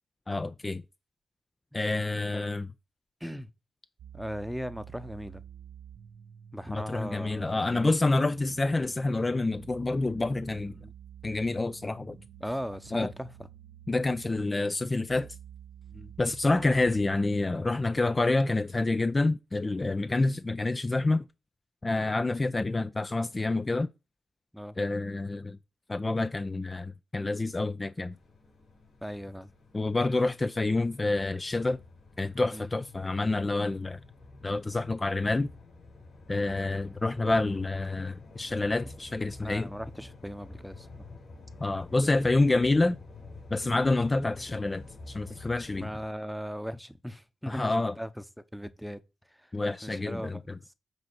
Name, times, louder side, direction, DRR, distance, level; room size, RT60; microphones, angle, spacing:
voice 1, 0.3-0.8 1.7-2.7 6.7-10.7 11.2-12.2 12.9-13.1 13.9-15.3 16.2-21.2 21.8-23.9 24.8-25.6 25.9-28.1 29.7-31.8 32.2-34.0 34.4-35.5 36.3-39.7 41.6-43.0 43.5-45.9 47.5-47.9 49.5-50.6, left 2 dB, 30° left, 0.4 m, -28 dB
voice 2, 3.2-3.5 4.1-5.4 6.5-8.0 10.7-10.9 12.4-13.3 15.9-16.1 18.1-18.2 20.0-20.1 21.9-22.1 24.5-24.8 29.0-29.5 32.5-32.7 39.4-40.9 43.6-43.8 45.8-49.0 49.3-49.5 49.8-50.7, equal, ahead, 0.8 m, -39 dB
sound 1, 4.0-17.8, right 9 dB, 75° right, 0.4 m, -50 dB
sound 2, 28.1-46.1, left 3 dB, 60° left, 4.0 m, -49 dB
7.8 x 2.8 x 6.1 m
supercardioid pair, 50°, 0 cm